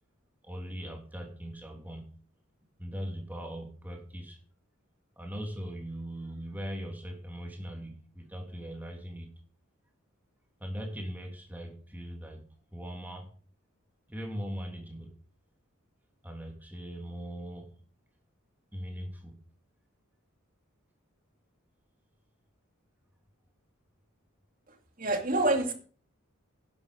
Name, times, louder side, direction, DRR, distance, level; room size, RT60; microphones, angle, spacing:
voice 1, 0.4-2.1 2.8-4.4 5.2-9.3 10.6-12.4 12.7-13.3 14.1-15.1 16.2-17.7 18.7-19.4, equal, 10° right, 1 dB, 3.3 m, -40 dB
voice 2, 24.7-25.7, right 2 dB, 40° right, 4 dB, 2.8 m, -28 dB
11.5 x 10.5 x 5.4 m, 0.42 s
head